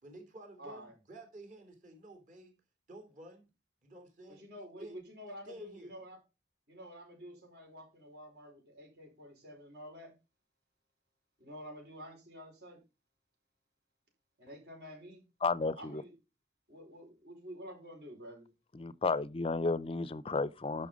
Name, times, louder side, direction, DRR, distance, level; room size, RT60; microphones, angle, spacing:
voice 1, 0.0-2.5 2.9-3.5 3.8-4.4 4.8-5.0 5.5-6.0, right 1 dB, 45° right, 3.5 m, -51 dB
voice 2, 0.6-0.9 4.3-6.2 6.7-10.1 11.4-12.8 14.4-15.2 15.8-16.1 16.7-18.5, equal, 60° right, 5.1 m, -49 dB
voice 3, 15.4-16.0 18.7-20.9, left 3 dB, 30° left, 0.5 m, -32 dB
11.5 x 5.7 x 5.0 m
head